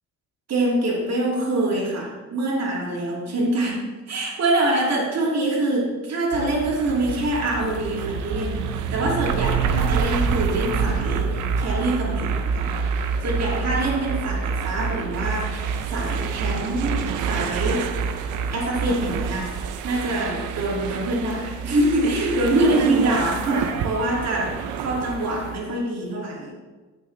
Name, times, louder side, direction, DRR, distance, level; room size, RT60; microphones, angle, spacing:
voice 1, 0.5-12.9 13.2-17.9 18.5-19.5 19.8-26.5, right 1 dB, 60° right, -3 dB, 2.6 m, -25 dB
sound 1, 6.3-25.6, right 6 dB, 85° right, 0.7 m, -27 dB
8.6 x 6.2 x 3.3 m, 1.3 s
cardioid pair, 90°, 30 cm